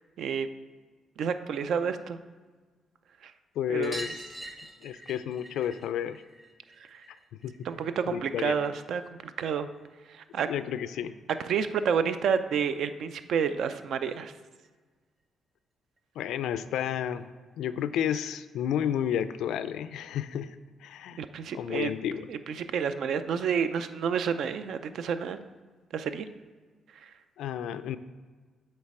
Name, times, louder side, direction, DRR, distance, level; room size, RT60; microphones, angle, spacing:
voice 1, 0.2-0.5 1.2-2.2 3.7-4.0 6.9-7.0 7.6-9.0 9.4-9.7 10.3-10.5 11.5-14.3 21.2-21.9 22.3-25.4 25.9-26.3, right 7 dB, 70° right, 11 dB, 0.4 m, -29 dB
voice 2, 3.6-4.2 4.8-6.2 7.4-7.6 8.1-8.6 10.4-11.1 16.2-17.3 17.6-20.6 20.8-21.2 21.5-22.3 27.4-28.0, left 9 dB, 80° left, 13 dB, 0.3 m, -31 dB
sound 1, 3.8-8.9 9.2-10.4 11.7-11.8 12.0-12.1 12.4-12.5 13.8-13.9 14.2-14.3 14.6-14.7 16.0-16.1 16.8-16.9, right 1 dB, 20° right, 0.9 m, -45 dB
8.1 x 3.2 x 4.8 m, 1.4 s
cardioid pair, 90°, 0 cm